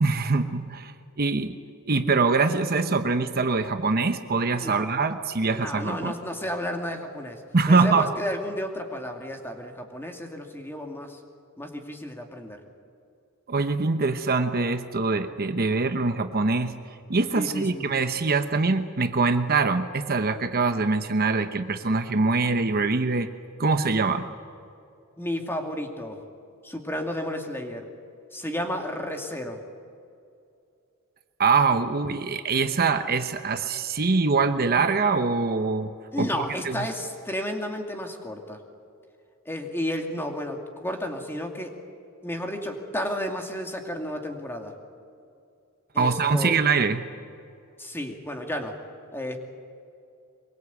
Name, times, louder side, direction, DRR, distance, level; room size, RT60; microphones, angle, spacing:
voice 1, 0.0-1.6 1.9-6.1 7.5-8.1 13.5-16.7 17.1-23.3 23.6-24.3 31.4-36.9 46.0-47.0, right 4 dB, 45° right, 8 dB, 1.0 m, -24 dB
voice 2, 4.5-4.9 5.4-7.4 7.7-11.2 11.6-12.6 17.3-17.8 25.2-26.2 26.6-27.9 28.3-29.6 36.1-38.6 39.5-41.8 42.2-44.7 45.9-46.5 47.8-48.8 49.1-49.4, equal, 10° left, 3 dB, 2.4 m, -32 dB
23.5 x 22.5 x 8.4 m, 2.5 s
head